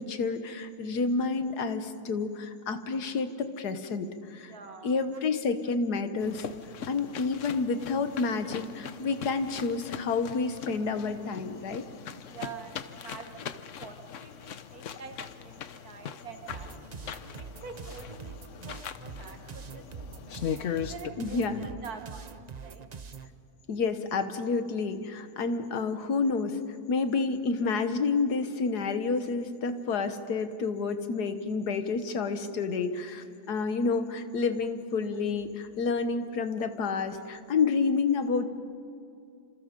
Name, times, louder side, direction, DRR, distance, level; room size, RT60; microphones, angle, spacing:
voice 1, 0.0-4.5 4.8-6.5 6.9-11.8 21.2-21.6 23.7-26.6 26.9-38.5, left 4 dB, 85° left, 9 dB, 1.8 m, -29 dB
voice 2, 4.5-5.2 12.2-17.0 17.4-20.4 20.8-22.9 36.1-36.2 37.1-37.2, right 6 dB, 70° right, 5 dB, 2.0 m, -46 dB
sound 1, 6.2-21.1, left 8 dB, 60° left, 1.0 m, -40 dB
sound 2, 16.5-23.3, right 5 dB, 40° right, 0.6 m, -44 dB
28.0 x 27.0 x 5.2 m, 2.4 s
omnidirectional pair, 1.7 m